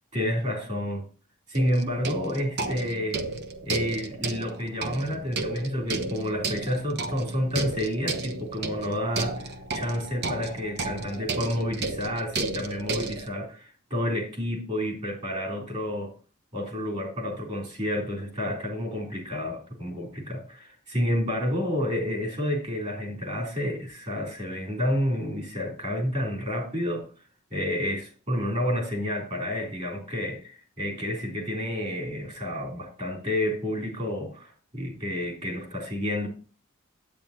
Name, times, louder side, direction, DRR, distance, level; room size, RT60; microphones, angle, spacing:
voice 1, 0.1-1.1 1.5-3.2 3.6-16.1 16.5-27.1 27.5-36.3, equal, 35° right, -1 dB, 3.7 m, -30 dB
sound 1, 1.5-13.3, right 3 dB, 55° right, 1.0 m, -33 dB
10.5 x 8.9 x 2.9 m, 0.37 s
head